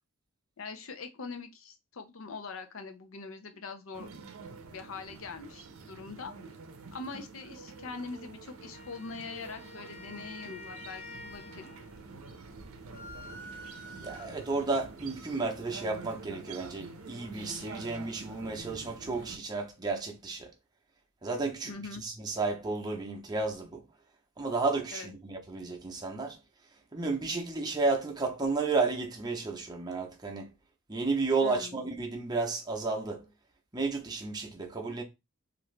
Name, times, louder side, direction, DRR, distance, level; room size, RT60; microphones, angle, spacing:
voice 1, 0.6-4.1 4.7-6.3 6.9-11.7 21.6-22.0 24.9-25.1 31.4-31.8, left 4 dB, 70° left, 0.6 m, -43 dB
sound 1, 3.9-19.4, right 4 dB, 75° right, 0.6 m, -47 dB
Wind instrument woodwind instrument, 8.7-12.1, left 4 dB, 30° left, 0.6 m, -48 dB
sound 2, 12.9-14.7, right 1 dB, 85° left, 1.2 m, -47 dB
voice 2, 14.0-20.5 21.2-21.7 22.0-23.8 24.4-26.4 26.9-30.5 30.9-33.2 33.7-35.0, right 3 dB, 20° right, 0.7 m, -32 dB
2.8 x 2.5 x 3.2 m
head